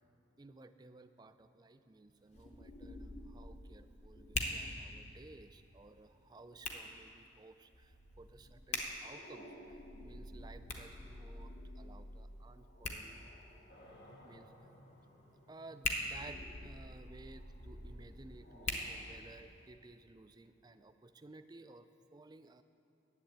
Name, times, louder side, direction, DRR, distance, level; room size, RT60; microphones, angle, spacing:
voice 1, 0.4-13.3 14.2-14.6 15.5-22.6, right 2 dB, 20° right, 10 dB, 0.4 m, -56 dB
Hands, 2.1-19.7, left 2 dB, 35° left, 1.0 m, -46 dB
sound 1, 2.3-6.6 7.7-13.7 14.2-14.3 15.9-19.3, equal, 85° left, 2.6 m, -52 dB
sound 2, 13.7-20.6, equal, 55° left, 1.7 m, -62 dB
10.5 x 7.7 x 8.6 m, 2.6 s
head